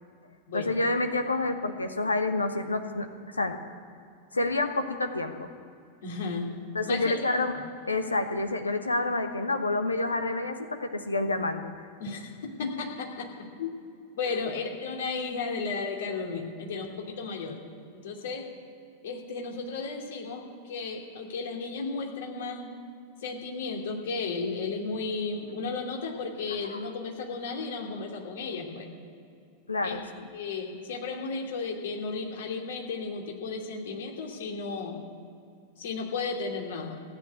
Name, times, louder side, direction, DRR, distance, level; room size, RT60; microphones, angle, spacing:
voice 1, 0.5-3.6 4.3-5.5 6.7-7.5 7.9-11.8 12.6-12.7 14.3-14.4 29.7-30.3, left 2 dB, 80° left, 7 dB, 1.1 m, -28 dB
voice 2, 6.0-6.5 6.9-7.1 12.0-13.3 13.6-13.7 14.2-17.6 18.0-18.5 19.0-22.7 23.2-28.9 29.8-30.0 30.3-35.0 35.8-37.0, left 4 dB, 60° left, 1 dB, 2.8 m, -34 dB
16.0 x 9.1 x 9.6 m, 2.5 s
figure-of-eight pair, 90°, 0 cm